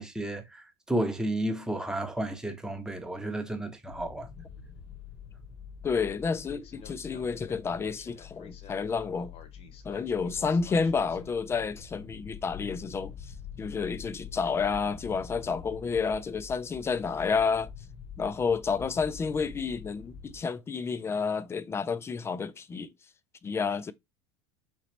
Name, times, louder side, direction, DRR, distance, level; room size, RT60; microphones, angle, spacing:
voice 1, 0.0-4.3, right 1 dB, 5° right, 0.7 m, -32 dB
sound 1, 3.9-20.4, left 7 dB, 40° left, 0.8 m, -46 dB
voice 2, 5.8-9.3 9.8-13.3 13.6-17.7 18.2-22.9 23.4-23.9, left 5 dB, 15° left, 0.3 m, -30 dB
3.8 x 2.9 x 3.2 m
supercardioid pair, 115°, 15 cm